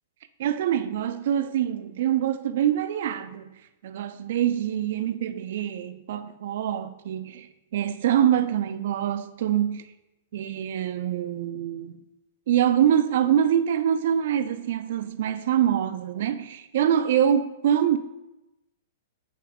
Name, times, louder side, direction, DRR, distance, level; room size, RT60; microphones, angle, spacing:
voice 1, 0.4-3.5 3.8-9.8 10.3-12.0 12.5-18.0, right 10 dB, 65° right, 0.3 m, -25 dB
4.7 x 3.0 x 3.6 m
hypercardioid pair, 140°, 0 cm